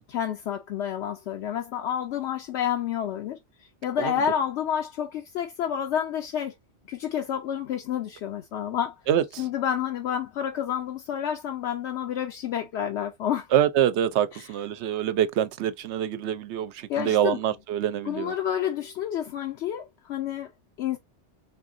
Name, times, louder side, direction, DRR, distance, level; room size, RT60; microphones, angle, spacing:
voice 1, 0.1-6.5 6.9-8.9 9.4-13.5 14.3-14.5 16.9-17.4 18.0-20.5 20.8-21.0, left 9 dB, 75° left, 0.9 m, -29 dB
voice 2, 9.1-9.4 13.5-18.3, right 10 dB, 75° right, 0.8 m, -25 dB
4.1 x 3.6 x 2.5 m
omnidirectional pair, 1.2 m